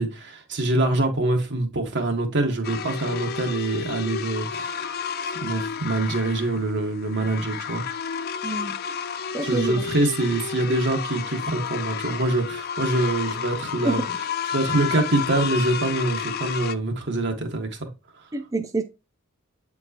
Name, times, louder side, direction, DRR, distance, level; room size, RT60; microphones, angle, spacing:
voice 1, 0.0-4.9 5.4-7.8 9.4-14.0 14.5-17.9 18.1-18.2, right 2 dB, 55° right, 1.3 m, -25 dB
sound 1, 2.6-16.8, left 7 dB, 45° left, 0.4 m, -31 dB
voice 2, 8.4-8.7 9.3-9.8 13.8-14.2 18.3-18.8, right 2 dB, 15° right, 0.4 m, -27 dB
7.7 x 4.5 x 2.8 m
head